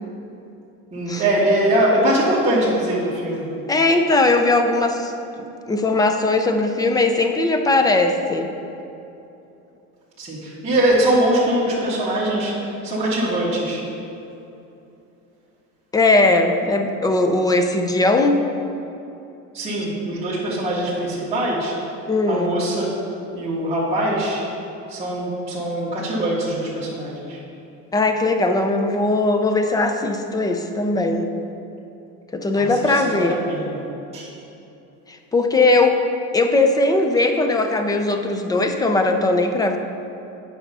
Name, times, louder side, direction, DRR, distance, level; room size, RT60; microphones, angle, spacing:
voice 1, 0.9-3.5 10.2-13.8 19.5-21.7 22.3-22.9 23.3-24.4 24.9-27.4 32.6-33.8 34.1-34.3, right 1 dB, 15° right, -10 dB, 1.7 m, -22 dB
voice 2, 3.7-8.5 15.9-18.4 22.1-22.5 27.9-31.3 32.3-33.3 35.1-36.0 36.3-39.8, left 2 dB, 10° left, 5 dB, 0.4 m, -19 dB
8.3 x 5.6 x 5.4 m, 2.8 s
cardioid pair, 140°, 36 cm